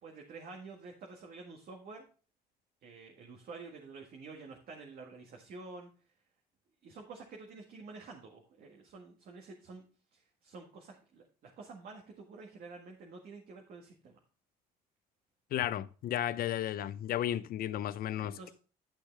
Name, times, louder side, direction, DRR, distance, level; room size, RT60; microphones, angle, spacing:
voice 1, 0.0-2.0 2.8-5.9 6.8-9.8 10.1-14.2 17.3-17.5 18.4-18.5, right 4 dB, 60° right, 1.8 m, -49 dB
voice 2, 15.5-18.5, left 11 dB, 60° left, 0.6 m, -34 dB
11.5 x 6.5 x 3.4 m
cardioid pair, 110°, 17 cm